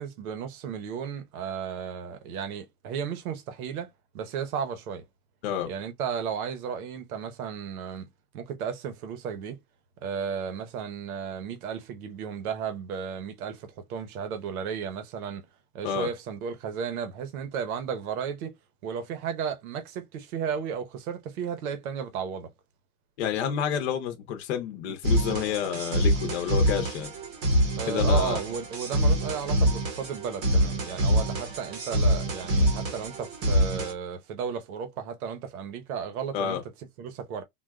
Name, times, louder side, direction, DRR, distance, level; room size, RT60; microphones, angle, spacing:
voice 1, 0.0-3.9 4.1-5.0 5.7-8.1 8.3-9.6 10.0-15.5 15.7-18.5 18.8-22.5 27.8-36.6 37.0-37.4, right 7 dB, 65° right, 0.9 m, -34 dB
voice 2, 23.2-27.1 27.8-28.4 36.3-36.6, left 9 dB, 45° left, 0.7 m, -29 dB
sound 1, 25.0-33.9, equal, 25° right, 0.8 m, -25 dB
3.8 x 2.3 x 2.2 m
supercardioid pair, 180°, 46 cm